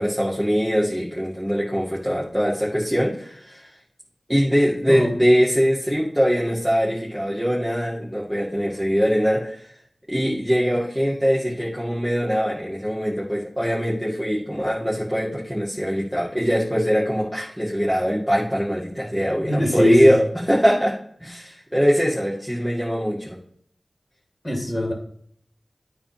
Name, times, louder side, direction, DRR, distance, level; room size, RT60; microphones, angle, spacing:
voice 1, 0.0-3.7 4.3-9.7 10.1-20.9 21.2-23.4, equal, 5° right, -7 dB, 2.3 m, -22 dB
voice 2, 4.9-5.2 19.5-20.2 24.4-24.9, left 1 dB, 30° left, 2 dB, 2.4 m, -21 dB
9.2 x 3.5 x 6.0 m, 0.63 s
cardioid pair, 45°, 0 cm